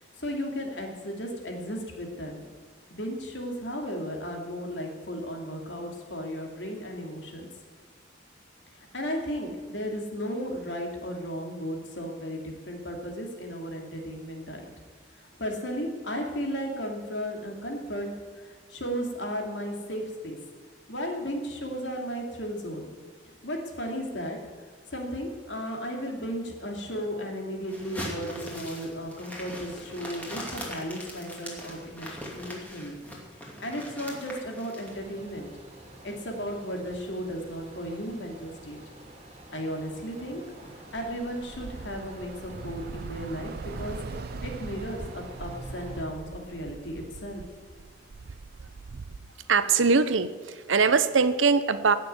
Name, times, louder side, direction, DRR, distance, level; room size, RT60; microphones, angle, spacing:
voice 1, 0.2-2.4 2.9-7.5 8.9-14.6 15.4-20.4 20.9-22.9 23.2-24.4 24.9-33.0 33.6-35.5 36.0-38.8 39.5-40.4 40.9-44.0 44.4-47.4, equal, 70° left, 2 dB, 2.7 m, -35 dB
sound 1, 27.7-34.9, left 1 dB, 10° left, 2.5 m, -40 dB
sound 2, 34.8-46.0, right 1 dB, 30° right, 2.5 m, -47 dB
Bus / Traffic noise roadway noise, 40.4-49.2, right 4 dB, 50° right, 0.4 m, -42 dB
voice 2, 49.5-52.0, right 5 dB, 90° right, 13 dB, 0.8 m, -22 dB
16.0 x 6.8 x 9.4 m, 1.5 s
head